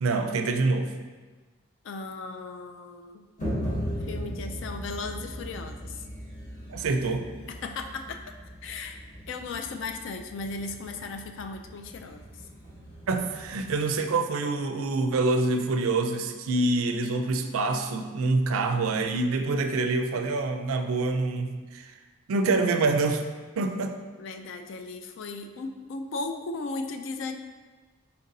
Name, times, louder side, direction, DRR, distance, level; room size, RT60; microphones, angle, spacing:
voice 1, 0.0-0.9 6.7-7.3 13.1-21.9 22.3-23.2 23.6-24.0, right 3 dB, 75° right, 7 dB, 0.4 m, -26 dB
voice 2, 1.8-3.2 4.0-6.1 7.5-8.2 8.6-12.2 24.2-27.3, left 3 dB, 60° left, 6 dB, 0.3 m, -36 dB
sound 1, 3.4-14.0, equal, 35° left, 1.2 m, -38 dB
4.3 x 4.0 x 2.6 m, 1.3 s
head